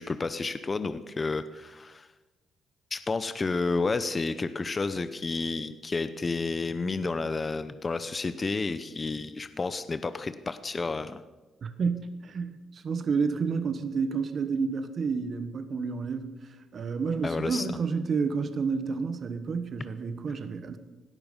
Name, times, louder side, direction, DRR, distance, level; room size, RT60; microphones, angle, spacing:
voice 1, 0.0-2.1 2.9-11.2 17.2-17.7, left 3 dB, 30° left, 12 dB, 0.8 m, -31 dB
voice 2, 11.6-16.4 16.7-20.8, right 5 dB, 50° right, 10 dB, 1.3 m, -30 dB
17.5 x 12.0 x 5.5 m, 1.2 s
cardioid pair, 90°, 0 cm